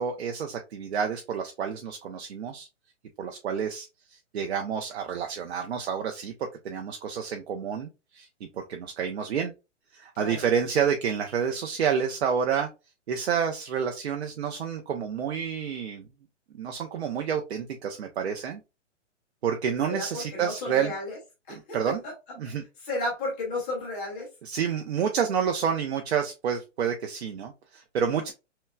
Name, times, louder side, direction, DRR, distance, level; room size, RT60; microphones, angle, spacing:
voice 1, 0.0-2.7 3.2-6.3 6.6-8.3 8.5-9.5 9.9-12.7 13.1-16.1 16.5-18.6 19.4-20.9 21.5-22.0 22.4-22.6 24.4-28.3, right 7 dB, 60° right, 0.7 m, -29 dB
voice 2, 19.9-21.2 21.5-22.1 22.8-24.3, left 2 dB, 10° left, 0.5 m, -33 dB
5.7 x 2.3 x 2.2 m
hypercardioid pair, 160°, 37 cm